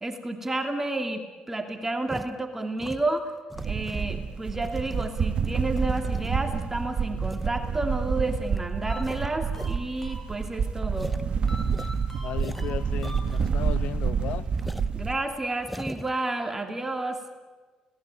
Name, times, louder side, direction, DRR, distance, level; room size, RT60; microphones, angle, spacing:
voice 1, 0.0-3.3 3.6-11.1 14.9-17.2, right 2 dB, 15° right, 4 dB, 2.7 m, -31 dB
sound 1, 2.1-2.3 2.8-4.1 4.5-6.6 7.2-7.5 8.0-8.1 8.5-8.6 8.9-9.8 10.0-10.1 10.4-10.5 10.9-11.2 11.7-13.8 14.0-14.1 14.6-14.9 15.5-16.1, equal, ahead, 1.0 m, -40 dB
sound 2, 3.5-15.1, right 6 dB, 55° right, 1.5 m, -28 dB
sound 3, 8.9-10.7 11.5-13.7, equal, 20° left, 6.0 m, -44 dB
voice 2, 12.2-14.5, left 11 dB, 80° left, 14 dB, 1.1 m, -35 dB
30.0 x 18.5 x 9.1 m, 1.4 s
cardioid pair, 85°, 2 cm